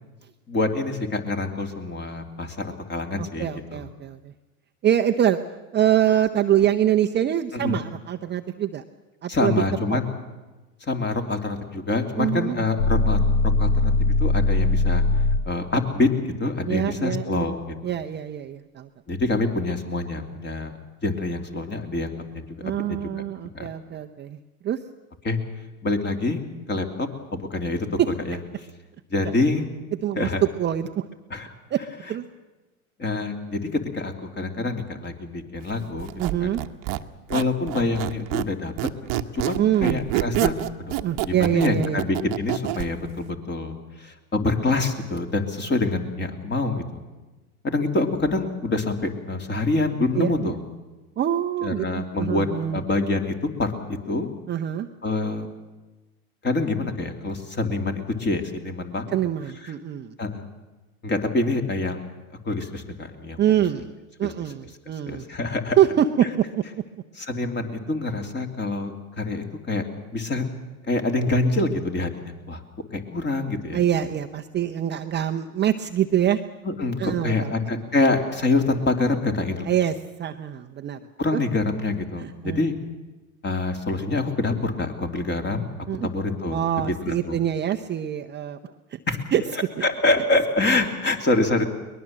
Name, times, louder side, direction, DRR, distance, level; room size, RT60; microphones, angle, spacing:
voice 1, 0.5-3.9 7.5-7.8 9.3-10.1 10.8-13.2 13.6-13.9 14.2-15.0 15.5-16.1 16.4-17.7 19.1-20.8 21.0-23.0 23.5-23.7 25.2-25.4 25.8-26.4 26.7-27.8 28.2-28.4 29.1-29.6 30.2-30.4 31.3-31.5 33.0-36.1 36.4-36.5 37.3-38.7 39.1-40.5 40.8-47.0 47.6-50.6 51.6-52.5 52.7-53.7 54.1-54.3 55.0-55.5 56.4-59.2 59.6-59.7 60.2-60.4 61.0-62.1 62.4-63.4 64.2-64.3 65.1-65.8 67.2-69.8 70.1-70.5 70.9-72.6 72.9-73.8 76.6-79.7 81.2-82.8 83.4-85.7 86.0-87.4 89.1-89.2 89.8-91.7, left 2 dB, 25° left, 5 dB, 3.0 m, -26 dB
voice 2, 3.2-4.3 4.8-5.4 5.7-8.8 9.2-9.6 9.9-10.0 12.2-12.6 16.7-17.5 17.8-18.9 22.6-24.4 24.6-24.8 28.0-28.1 29.2-29.3 30.0-30.3 30.6-31.1 31.7-31.8 32.1-32.2 36.2-36.6 39.6-40.1 41.0-42.0 50.1-50.5 51.2-52.8 54.5-54.9 59.1-60.1 63.4-63.9 64.2-65.2 65.8-66.6 73.7-76.4 77.0-77.5 79.6-79.9 80.2-81.0 81.3-81.4 82.2-82.6 85.9-86.1 86.5-89.0 89.3-89.8, right 10 dB, 25° right, 5 dB, 0.8 m, -24 dB
sound 1, 12.8-15.6, left 3 dB, 75° left, 3.1 m, -20 dB
Squeak, 36.0-38.5 38.8-42.9, right 16 dB, 45° right, 1.1 m, -27 dB
22.5 x 20.5 x 7.6 m, 1.2 s
hypercardioid pair, 105°, 44 cm